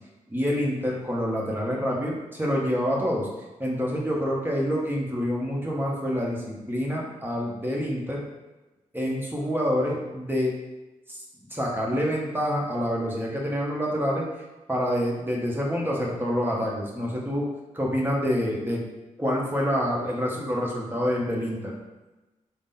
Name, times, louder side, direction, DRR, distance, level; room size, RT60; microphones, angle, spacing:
voice 1, 0.3-3.3 3.6-8.2 8.9-10.5 11.1-11.2 11.5-17.5 17.7-18.8 19.2-21.7, equal, 15° right, -3 dB, 1.1 m, -27 dB
3.7 x 2.2 x 3.7 m, 1.1 s
cardioid pair, 45°, 13 cm